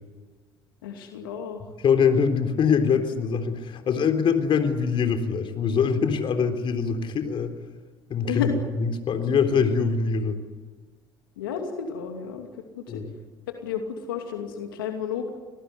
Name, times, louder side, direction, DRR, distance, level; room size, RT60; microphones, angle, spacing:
voice 1, 0.8-1.6 8.3-8.5 11.4-12.5 12.8-13.0 13.6-15.3, left 8 dB, 90° left, 3 dB, 2.6 m, -31 dB
voice 2, 1.8-7.5 8.1-8.5 8.8-10.4 12.9-13.1, left 6 dB, 50° left, 7 dB, 3.7 m, -23 dB
26.0 x 18.5 x 9.7 m, 1.3 s
hypercardioid pair, 65°, 11 cm